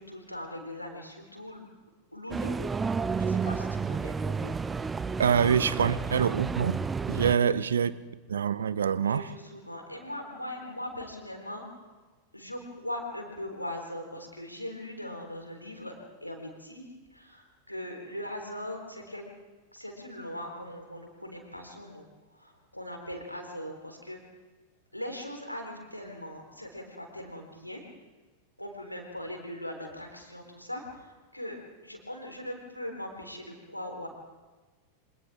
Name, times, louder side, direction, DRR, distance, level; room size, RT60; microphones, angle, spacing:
voice 1, 0.0-1.6 2.1-2.6 3.2-4.6 5.7-6.1 7.0-7.8 9.0-11.6 12.3-19.3 19.7-24.2 24.9-27.8 28.6-34.1, left 1 dB, 90° left, 4.0 m, -40 dB
sound 1, 2.3-7.4, right 5 dB, 15° right, 0.7 m, -31 dB
voice 2, 5.2-6.8 7.1-7.9 8.3-9.3, right 7 dB, 65° right, 0.7 m, -25 dB
28.0 x 25.5 x 3.7 m
figure-of-eight pair, 90°, 0 cm